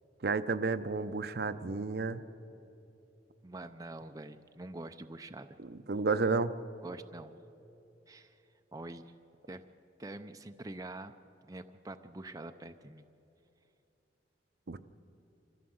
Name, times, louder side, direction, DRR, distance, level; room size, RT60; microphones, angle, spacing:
voice 1, 0.2-2.2 5.9-6.5 14.7-14.8, right 4 dB, 60° right, 11 dB, 0.7 m, -31 dB
voice 2, 3.4-5.5 6.8-7.3 8.1-8.4 8.7-9.1 9.5-9.6 10.0-11.1 11.5-13.0, right 2 dB, 20° right, 8 dB, 0.5 m, -45 dB
26.0 x 15.0 x 7.8 m, 2.9 s
head